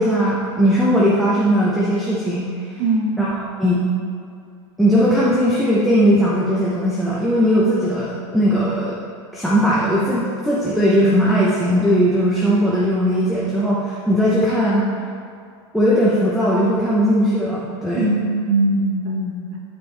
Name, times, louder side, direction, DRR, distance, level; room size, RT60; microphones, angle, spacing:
voice 1, 0.0-2.5 3.2-3.8 4.8-9.0 9.3-14.8 15.7-18.1, equal, ahead, -8 dB, 0.9 m, -18 dB
voice 2, 2.8-3.2 17.9-19.6, right 2 dB, 45° right, -2 dB, 1.6 m, -21 dB
12.5 x 4.6 x 3.4 m, 2.3 s
supercardioid pair, 150°, 15 cm